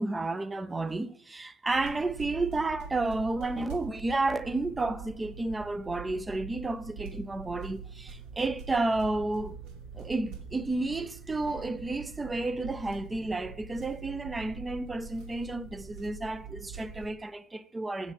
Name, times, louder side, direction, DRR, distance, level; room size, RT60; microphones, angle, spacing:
voice 1, 0.0-9.6 9.9-18.1, right 2 dB, 15° right, 0.5 m, -31 dB
sound 1, 1.7-17.1, right 6 dB, 65° right, 2.4 m, -45 dB
8.0 x 7.1 x 5.3 m
hypercardioid pair, 100°, 0 cm